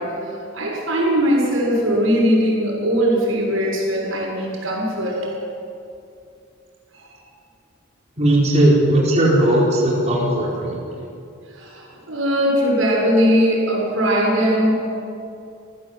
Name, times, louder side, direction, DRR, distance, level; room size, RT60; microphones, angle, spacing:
voice 1, 0.0-5.3 6.9-7.2 11.5-14.7, equal, 85° right, -2 dB, 6.6 m, -20 dB
voice 2, 8.2-10.8, right 1 dB, 35° right, -5 dB, 4.5 m, -17 dB
26.5 x 15.5 x 8.1 m, 2.6 s
head